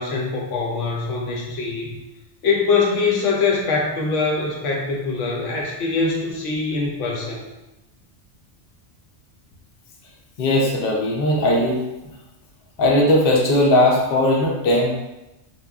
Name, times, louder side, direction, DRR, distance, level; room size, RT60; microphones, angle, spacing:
voice 1, 0.0-1.9 2.4-7.4, left 4 dB, 85° left, -2 dB, 1.0 m, -23 dB
voice 2, 10.4-11.8 12.8-14.9, left 1 dB, 60° left, -1 dB, 0.7 m, -18 dB
2.9 x 2.2 x 2.3 m, 0.98 s
omnidirectional pair, 1.2 m